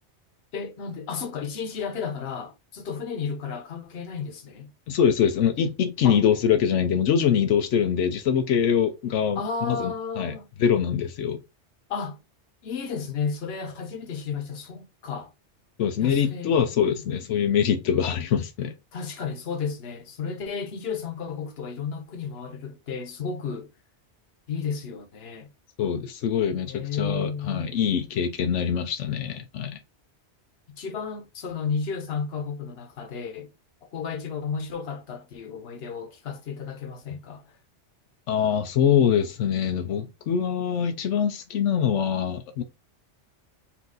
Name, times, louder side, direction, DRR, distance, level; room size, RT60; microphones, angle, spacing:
voice 1, 0.5-4.7 6.0-6.2 9.4-10.5 11.9-12.2 12.6-15.3 16.0-16.5 16.9-17.1 18.9-23.7 24.5-25.5 26.7-27.7 30.8-33.5 33.8-37.4, left 6 dB, 60° left, 1.1 m, -33 dB
voice 2, 4.9-9.4 9.7-11.4 15.8-18.7 25.8-29.8 38.3-42.6, left 8 dB, 90° left, 0.9 m, -24 dB
4.3 x 2.7 x 3.8 m
omnidirectional pair, 1.2 m